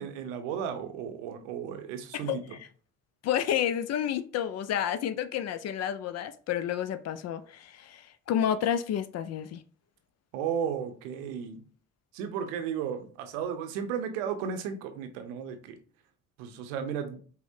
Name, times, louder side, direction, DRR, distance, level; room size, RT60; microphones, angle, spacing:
voice 1, 0.0-2.4 10.3-11.6 12.1-15.8 16.4-17.2, right 7 dB, 75° right, 0.7 m, -34 dB
voice 2, 2.1-2.6 3.2-9.6, left 9 dB, 45° left, 0.4 m, -30 dB
5.4 x 2.1 x 2.7 m
hypercardioid pair, 50°, 39 cm